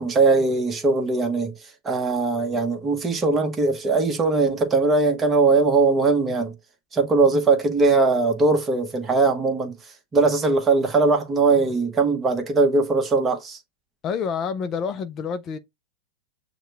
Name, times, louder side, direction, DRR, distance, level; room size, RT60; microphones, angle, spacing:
voice 1, 0.0-1.5 1.8-6.5 6.9-9.7 10.1-13.6, right 3 dB, 20° right, 1.1 m, -20 dB
voice 2, 14.0-15.6, left 6 dB, 35° left, 0.4 m, -28 dB
6.3 x 2.2 x 3.3 m
hypercardioid pair, 115°, 0 cm